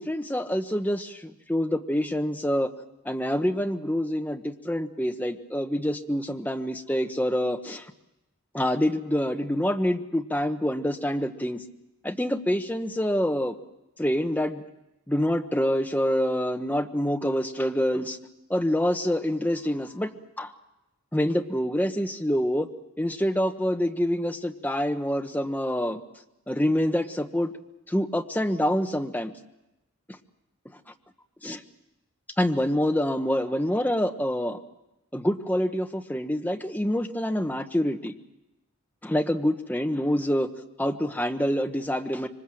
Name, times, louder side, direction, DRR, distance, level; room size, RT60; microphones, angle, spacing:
voice 1, 0.0-2.7 3.0-7.9 8.5-11.6 12.0-13.5 14.0-14.6 15.1-18.2 18.5-20.1 20.4-20.5 21.1-22.7 23.0-26.0 26.5-27.5 27.9-29.3 31.4-31.6 32.4-34.6 35.1-38.1 39.0-40.5 40.8-42.3, equal, 10° left, 5 dB, 1.1 m, -26 dB
26.0 x 24.0 x 7.7 m, 0.95 s
head